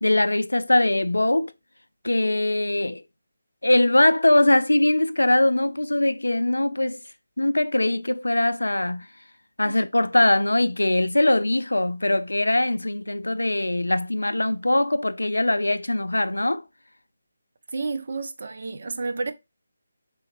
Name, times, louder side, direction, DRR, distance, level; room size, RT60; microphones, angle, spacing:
voice 1, 0.0-1.5 2.0-3.0 3.6-7.0 7.4-9.1 9.6-16.6, left 1 dB, 85° left, 0.3 m, -21 dB
voice 2, 17.7-19.3, right 3 dB, 55° right, 0.5 m, -30 dB
3.7 x 3.1 x 2.9 m
figure-of-eight pair, 160°, 0 cm